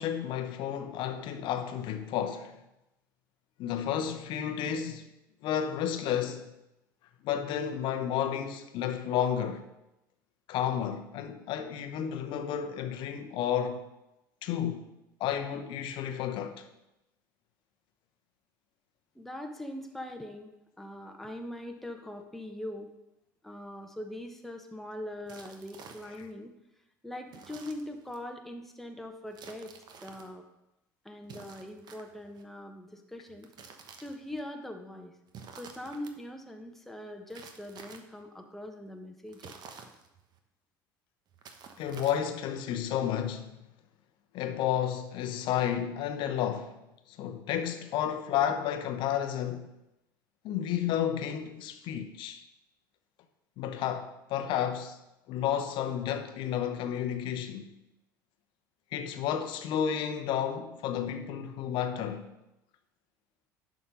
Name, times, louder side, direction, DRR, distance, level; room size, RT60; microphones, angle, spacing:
voice 1, 0.0-2.6 3.6-5.1 5.4-6.5 7.2-9.7 10.5-13.8 14.4-14.9 15.2-16.6 26.1-26.3 41.8-43.5 44.3-46.8 47.2-49.7 50.4-52.4 53.6-55.0 55.3-57.7 58.9-62.3, left 9 dB, 50° left, 0.9 m, -31 dB
voice 2, 19.1-20.5 20.8-22.9 23.4-26.5 27.0-29.7 30.0-30.4 31.0-33.5 34.0-35.2 35.5-39.5, left 1 dB, 5° left, 1.1 m, -42 dB
sound 1, 25.3-26.3 27.3-28.2 29.3-30.3 31.2-32.4 33.3-34.4 35.3-36.1 37.3-38.2 39.3-40.4 41.3-42.5, right 6 dB, 45° right, 1.0 m, -50 dB
11.0 x 4.0 x 5.2 m
figure-of-eight pair, 65°, 10 cm